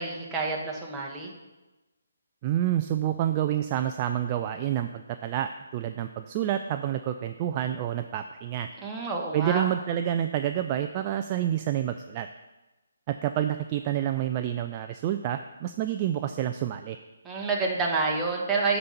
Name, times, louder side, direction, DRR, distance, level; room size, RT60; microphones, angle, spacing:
voice 1, 0.0-1.3 8.8-9.6 17.2-18.8, right 3 dB, 10° right, -2 dB, 1.2 m, -28 dB
voice 2, 2.4-8.7 9.3-12.3 13.1-17.0, right 11 dB, 30° right, 7 dB, 0.3 m, -28 dB
8.7 x 4.0 x 6.8 m, 1.1 s
figure-of-eight pair, 145°, 0 cm